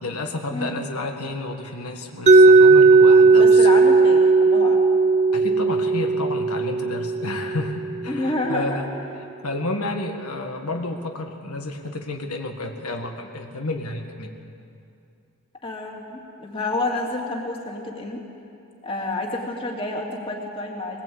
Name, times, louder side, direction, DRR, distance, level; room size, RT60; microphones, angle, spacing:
voice 1, 0.0-3.8 5.3-14.3, left 2 dB, 85° left, 3 dB, 1.8 m, -31 dB
Mallet percussion, 2.3-8.1, right 3 dB, 30° right, 0.6 m, -15 dB
voice 2, 3.4-4.8 8.1-8.8 9.2-9.3 15.6-18.2 18.8-21.0, left 2 dB, 25° left, 0 dB, 2.6 m, -29 dB
21.0 x 20.0 x 8.6 m, 2.6 s
head